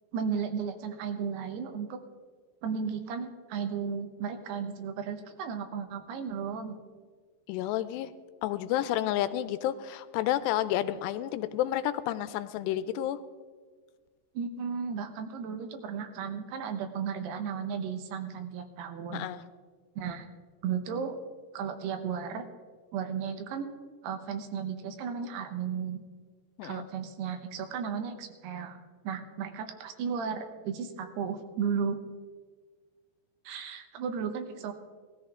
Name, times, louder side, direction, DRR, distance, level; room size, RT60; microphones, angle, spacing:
voice 1, 0.1-2.0 2.6-6.8 14.3-19.3 20.0-20.3 20.6-21.2 21.5-22.4 22.9-23.7 24.0-26.0 26.6-28.8 29.0-32.0 33.5-34.7, right 6 dB, 80° right, 7 dB, 3.1 m, -34 dB
voice 2, 7.5-8.1 8.4-13.2 19.1-19.4 26.6-26.9, left 13 dB, 85° left, 13 dB, 2.8 m, -30 dB
18.0 x 14.0 x 3.7 m, 1.5 s
omnidirectional pair, 4.8 m